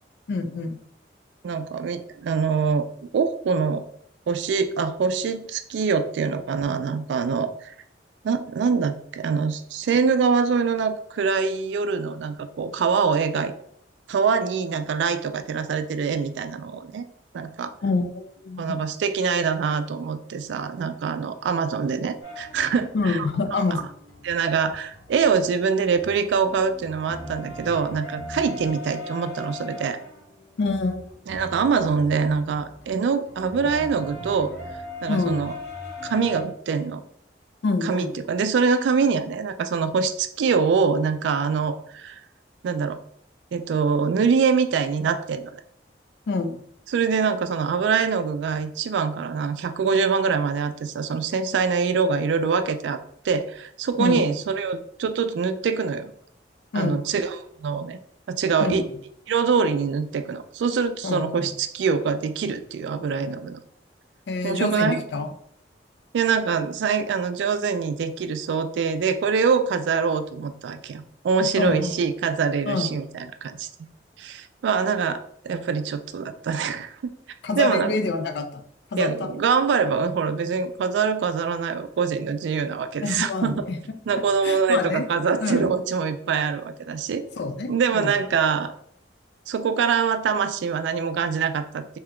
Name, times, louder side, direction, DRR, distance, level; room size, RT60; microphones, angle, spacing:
voice 1, 0.3-0.8 17.8-18.8 22.9-23.9 30.6-31.0 35.1-35.5 37.6-38.1 46.3-46.6 54.0-54.3 56.7-57.0 58.6-58.9 61.0-61.5 64.3-65.3 71.6-71.9 72.7-72.9 77.4-78.6 78.9-79.3 83.0-83.8 84.4-85.1 85.4-85.7 87.4-88.1, left 3 dB, 70° left, 8 dB, 0.4 m, -26 dB
voice 2, 1.4-2.9 3.1-3.8 4.3-7.7 8.2-13.5 14.1-17.0 17.3-17.7 18.6-23.3 23.7-23.8 24.2-30.0 31.3-34.5 35.0-35.5 36.0-37.0 37.8-42.2 42.6-43.0 43.5-45.6 46.9-53.0 53.2-56.1 56.8-58.0 58.3-58.9 59.3-63.6 64.4-65.0 66.1-73.7 74.2-77.1 77.6-78.0 79.0-83.6 84.1-87.2 87.7-88.7 89.5-92.0, right 5 dB, 80° right, 10 dB, 0.3 m, -24 dB
sound 1, 22.2-25.4 25.8-36.4, left 2 dB, 90° left, 1.0 m, -40 dB
2.8 x 2.2 x 3.6 m, 0.67 s
head